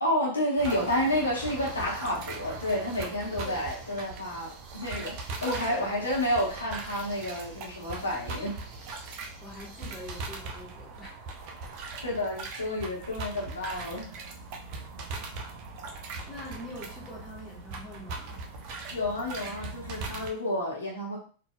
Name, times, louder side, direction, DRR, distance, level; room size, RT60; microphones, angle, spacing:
voice 1, 0.0-5.1 5.4-8.6 12.0-14.1 18.9-21.2, left 1 dB, 75° left, -4 dB, 1.0 m, -30 dB
voice 2, 0.6-1.0 3.4-3.6 5.7-6.0 9.4-11.2 16.3-18.4, equal, 20° left, -5 dB, 1.4 m, -44 dB
sound 1, 0.6-20.3, right 3 dB, 45° right, 0.6 m, -40 dB
3.9 x 2.5 x 2.2 m, 0.41 s
figure-of-eight pair, 90°, 0 cm